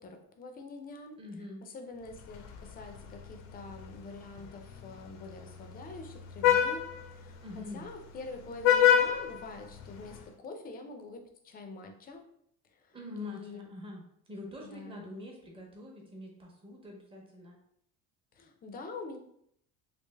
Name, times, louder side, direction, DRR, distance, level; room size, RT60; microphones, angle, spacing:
voice 1, 0.0-1.2 1.6-7.4 7.7-12.2 12.7-13.7 14.6-15.2 18.3-19.2, left 3 dB, 30° left, 5 dB, 0.4 m, -46 dB
voice 2, 1.2-1.6 7.4-7.8 12.9-14.0 14.3-17.6, left 2 dB, 15° right, -1 dB, 0.7 m, -44 dB
Vehicle horn car horn honking, 2.1-10.2, left 9 dB, 80° left, 0.6 m, -30 dB
3.3 x 2.5 x 3.2 m, 0.70 s
cardioid pair, 160°, 32 cm